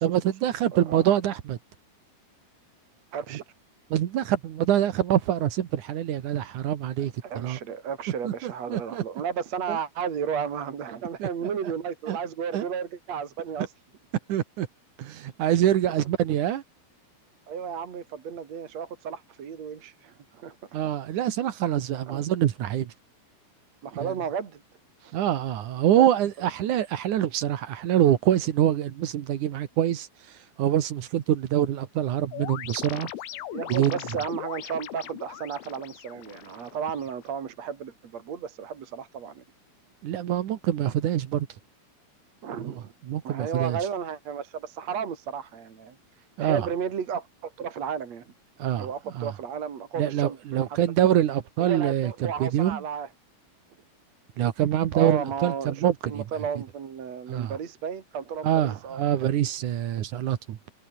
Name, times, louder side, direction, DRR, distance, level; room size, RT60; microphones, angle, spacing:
voice 1, 0.0-1.6 3.9-7.6 8.2-9.0 9.7-9.8 11.2-11.3 12.1-12.2 12.5-12.6 14.3-14.7 15.0-16.6 20.7-22.9 24.0-24.1 25.1-30.1 30.6-33.1 33.7-34.0 40.0-41.5 42.6-43.8 46.4-46.7 48.6-48.9 49.1-49.3 50.0-52.8 54.4-56.2 57.3-57.5 58.4-60.6, right 11 dB, 80° right, 1.8 m, -25 dB
voice 2, 0.7-1.1 3.1-3.4 7.2-13.7 15.9-16.0 17.5-20.6 22.1-22.2 23.8-24.6 25.0-25.2 25.9-26.0 26.6-26.8 33.5-39.4 42.4-42.9 43.2-46.0 46.4-48.3 48.8-50.6 51.6-53.1 54.9-59.1, right 7 dB, 45° right, 2.6 m, -33 dB
sound 1, 32.3-37.3, left 13 dB, 85° left, 4.4 m, -39 dB
omnidirectional pair, 5.8 m